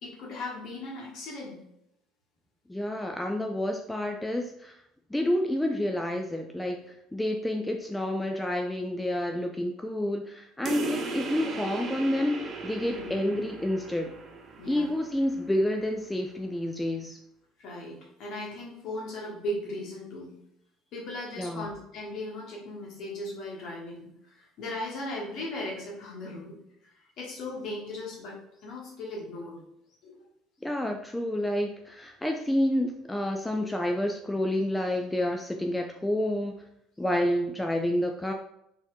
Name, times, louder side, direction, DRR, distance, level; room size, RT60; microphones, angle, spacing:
voice 1, 0.0-1.6 12.9-13.1 14.6-15.0 17.6-20.3 20.9-26.6 26.8-29.6 30.0-30.2 37.1-37.4, left 1 dB, 50° left, -3 dB, 1.2 m, -38 dB
voice 2, 2.7-4.7 5.1-6.8 7.1-14.1 14.7-17.2 21.4-21.7 30.6-36.6 37.0-38.3, left 1 dB, 10° left, 3 dB, 0.3 m, -29 dB
sound 1, 10.6-15.7, right 3 dB, 35° right, 0.6 m, -37 dB
4.1 x 2.8 x 2.4 m, 0.78 s
figure-of-eight pair, 60°, 0 cm